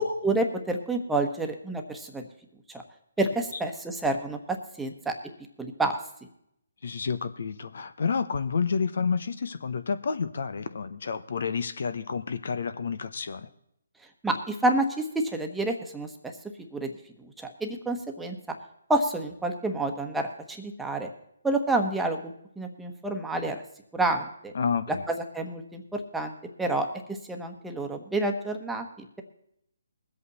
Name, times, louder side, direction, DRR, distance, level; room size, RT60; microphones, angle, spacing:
voice 1, 0.0-2.2 2.7-2.8 3.2-5.1 5.6-6.0 14.2-16.3 16.7-16.9 17.2-18.4 18.9-21.1 21.4-23.6 23.9-24.5 25.1-26.3 26.6-29.2, right 2 dB, 5° right, 3 dB, 1.3 m, -29 dB
voice 2, 6.8-13.5 24.5-25.0, left 5 dB, 65° left, 12 dB, 0.9 m, -29 dB
20.5 x 8.3 x 4.2 m, 0.74 s
hypercardioid pair, 150°, 0 cm